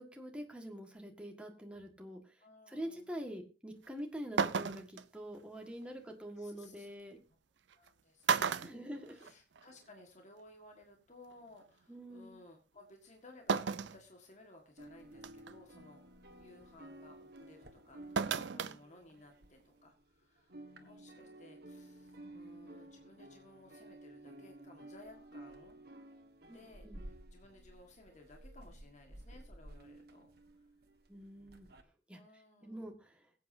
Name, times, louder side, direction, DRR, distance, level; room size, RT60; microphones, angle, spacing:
voice 1, 0.0-7.2 8.6-9.3 11.9-12.3 18.5-18.8 26.5-27.0 31.1-31.7 32.1-32.2 32.6-33.3, equal, 5° right, 2 dB, 1.7 m, -46 dB
voice 2, 2.4-3.2 6.4-6.9 7.8-13.7 13.9-16.0 16.4-25.8 26.4-30.3 32.1-32.9, left 2 dB, 45° left, 2 dB, 1.7 m, -59 dB
sound 1, 3.8-3.9 4.4-5.0 6.6-6.7 7.7-7.9 8.2-9.6 10.0-10.1 11.3-11.4 13.5-14.0 14.5-14.6 15.2-15.5 18.2-18.8 19.1-19.2, right 6 dB, 85° right, 0.6 m, -33 dB
sound 2, 14.8-20.1 20.4-31.8, right 1 dB, 60° right, 1.5 m, -54 dB
22.0 x 8.4 x 2.7 m, 0.32 s
head